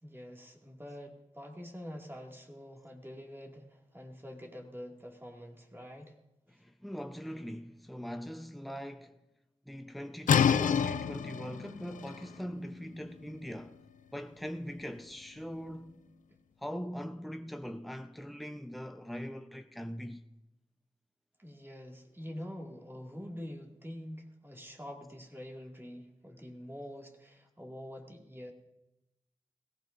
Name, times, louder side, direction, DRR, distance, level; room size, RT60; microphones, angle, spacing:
voice 1, 0.0-6.1 21.4-28.5, equal, 15° right, 2.2 m, -46 dB
voice 2, 6.5-9.2 9.7-13.8 14.1-16.1 16.6-20.2, equal, ahead, 0.7 m, -41 dB
sound 1, 10.3-15.9, left 7 dB, 90° left, 0.4 m, -31 dB
21.0 x 15.5 x 2.6 m
cardioid pair, 45°, 13 cm